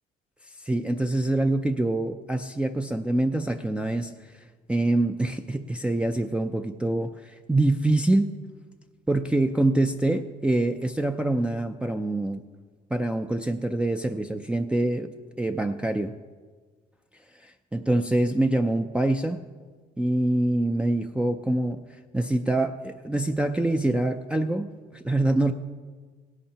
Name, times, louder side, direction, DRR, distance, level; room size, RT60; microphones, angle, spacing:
voice 1, 0.6-4.1 4.7-8.3 9.1-12.4 12.9-15.1 15.4-16.1 17.4-19.4 20.0-21.9 22.1-25.5, right 2 dB, 5° right, 3 dB, 0.4 m, -25 dB
17.5 x 11.0 x 2.9 m, 1.5 s
cardioid pair, 110°, 17 cm